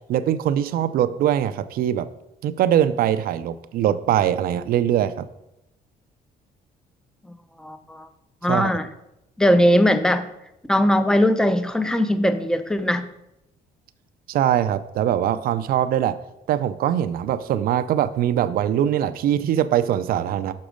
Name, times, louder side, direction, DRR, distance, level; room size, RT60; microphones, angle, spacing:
voice 1, 0.1-2.1 2.4-5.2 8.5-8.7 14.3-16.2 16.5-20.5, right 10 dB, 60° right, 13 dB, 0.4 m, -22 dB
voice 2, 7.6-8.1 8.4-8.9 9.4-10.3 10.7-13.1, equal, 5° left, 11 dB, 0.5 m, -19 dB
6.3 x 5.9 x 5.0 m, 0.89 s
cardioid pair, 110°, 17 cm